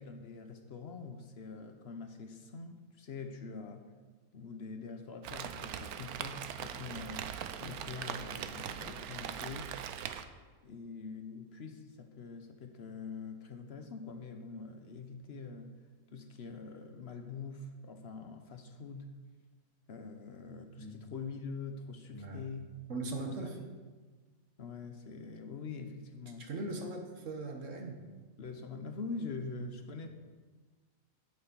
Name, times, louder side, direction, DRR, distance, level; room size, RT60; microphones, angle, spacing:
voice 1, 0.0-3.9 4.3-9.8 10.6-15.7 16.1-19.1 19.9-22.7 23.3-23.8 24.6-26.9 28.4-30.1, left 4 dB, 50° left, 7 dB, 0.9 m, -44 dB
Rain, 5.2-10.2, right 9 dB, 80° right, 1.1 m, -41 dB
voice 2, 22.1-22.4 22.9-23.5 26.4-28.0, right 2 dB, 55° right, 3 dB, 1.6 m, -39 dB
8.4 x 7.9 x 6.9 m, 1.4 s
omnidirectional pair, 1.6 m